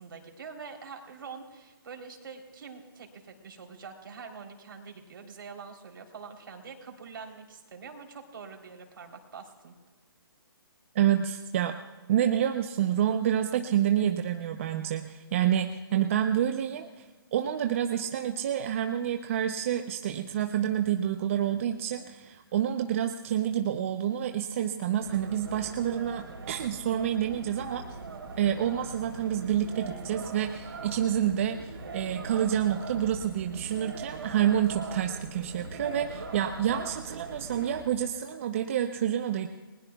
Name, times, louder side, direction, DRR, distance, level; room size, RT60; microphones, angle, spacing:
voice 1, 0.0-9.7, right 5 dB, 65° right, 3 dB, 3.5 m, -45 dB
voice 2, 10.9-11.8 12.1-17.0 17.3-27.8 28.4-39.5, right 10 dB, 35° right, 6 dB, 0.7 m, -28 dB
sound 1, 25.0-37.8, right 3 dB, 85° right, 4.0 m, -41 dB
29.5 x 20.5 x 2.3 m, 1.3 s
hypercardioid pair, 165°, 13 cm